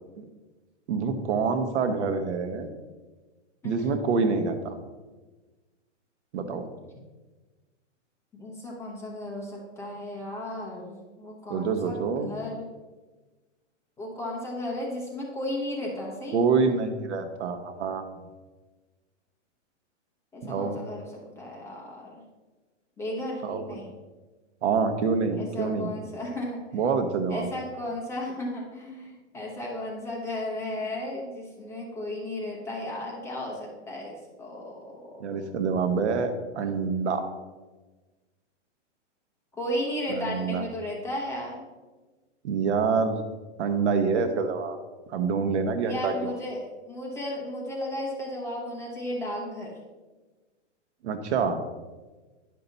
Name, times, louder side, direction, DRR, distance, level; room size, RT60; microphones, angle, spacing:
voice 1, 0.9-2.7 3.6-4.8 6.3-6.6 11.5-12.3 16.3-18.0 20.4-20.8 23.4-23.7 24.6-25.9 26.7-27.5 35.2-37.3 40.1-40.6 42.4-43.2 43.6-44.8 45.1-46.3 51.0-51.6, right 5 dB, 65° right, 7 dB, 1.1 m, -26 dB
voice 2, 3.6-4.0 8.4-12.7 14.0-16.4 20.3-21.1 21.4-22.2 23.0-23.9 25.3-26.6 27.3-35.3 39.6-41.6 45.8-49.8, left 1 dB, 5° left, -3 dB, 0.8 m, -34 dB
10.5 x 5.6 x 4.0 m, 1.2 s
hypercardioid pair, 165°, 37 cm